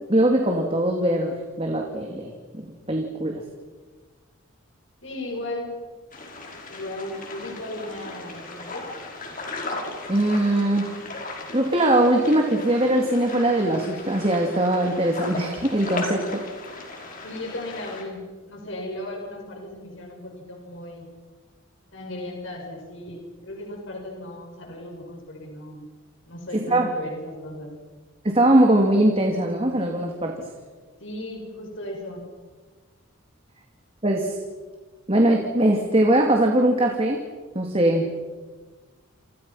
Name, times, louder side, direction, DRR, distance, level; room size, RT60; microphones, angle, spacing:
voice 1, 0.1-3.4 10.1-11.0 11.5-16.4 26.5-26.9 28.2-30.4 34.0-34.4 35.1-37.2 37.5-38.1, right 1 dB, 30° right, 2 dB, 2.7 m, -21 dB
voice 2, 5.0-5.7 6.7-8.9 17.2-21.1 21.9-25.8 26.2-27.7 31.0-32.2, left 1 dB, 60° left, 1 dB, 6.3 m, -36 dB
sound 1, 6.1-18.0, left 2 dB, 40° left, 5.4 m, -37 dB
29.0 x 28.5 x 5.8 m, 1.4 s
head